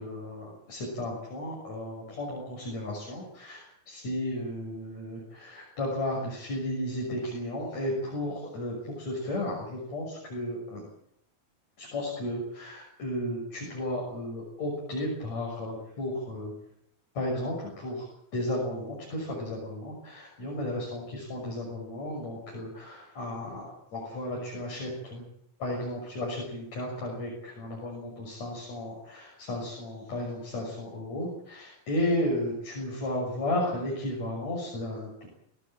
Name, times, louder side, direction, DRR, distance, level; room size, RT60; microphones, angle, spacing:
voice 1, 0.0-10.8 11.8-16.5 17.1-18.1 18.3-25.3 25.6-35.3, left 1 dB, 50° left, -2 dB, 7.6 m, -34 dB
24.0 x 18.5 x 9.0 m, 0.73 s
omnidirectional pair, 4.1 m